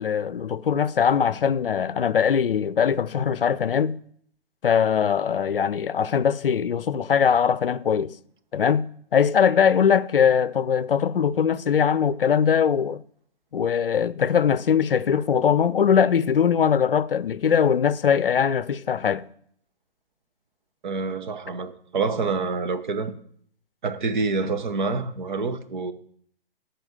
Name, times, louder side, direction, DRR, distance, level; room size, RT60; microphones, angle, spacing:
voice 1, 0.0-4.0 4.6-8.1 8.5-13.0 13.5-19.2, left 7 dB, 65° left, 0.6 m, -21 dB
voice 2, 20.8-23.1 23.8-25.9, right 4 dB, 50° right, 1.1 m, -27 dB
12.0 x 4.3 x 7.9 m
figure-of-eight pair, 125°, 31 cm